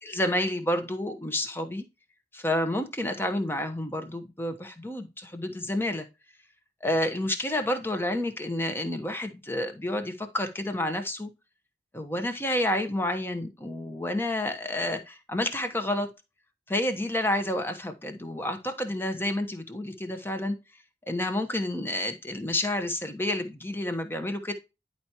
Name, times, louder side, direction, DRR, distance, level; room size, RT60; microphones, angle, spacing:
voice 1, 0.0-1.8 2.3-6.1 6.8-11.3 11.9-16.1 16.7-20.6 21.1-24.5, left 1 dB, 15° left, 1.0 m, -29 dB
10.5 x 4.6 x 2.8 m
head